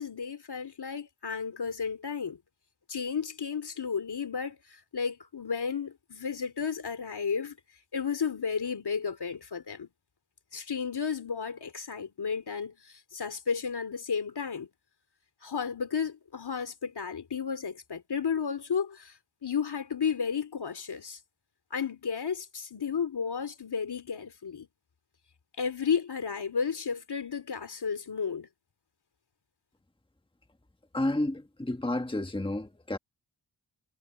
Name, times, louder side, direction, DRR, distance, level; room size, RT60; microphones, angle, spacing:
voice 1, 0.0-2.4 2.9-7.6 7.9-9.9 10.5-14.7 15.4-21.2 21.7-24.7 25.6-28.5, left 6 dB, 60° left, 2.8 m, -33 dB
voice 2, 30.9-33.0, left 1 dB, 10° left, 1.6 m, -31 dB
cardioid pair, 60°, 44 cm